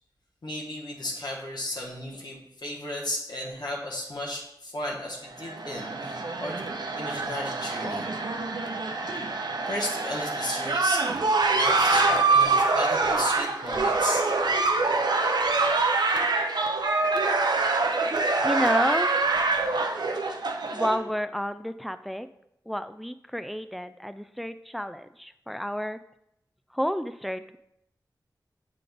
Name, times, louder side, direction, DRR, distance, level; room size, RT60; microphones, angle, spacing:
voice 1, 0.4-6.6 7.0-8.1 9.6-11.0 11.5-14.2, left 1 dB, 65° left, -3 dB, 1.3 m, -34 dB
sound 1, 5.3-21.0, right 3 dB, 65° right, 0.6 m, -25 dB
voice 2, 18.4-19.1 20.7-22.3 22.7-26.0 26.7-27.6, equal, ahead, 11 dB, 0.3 m, -30 dB
7.5 x 3.8 x 3.5 m, 0.79 s
wide cardioid pair, 60°, 8 cm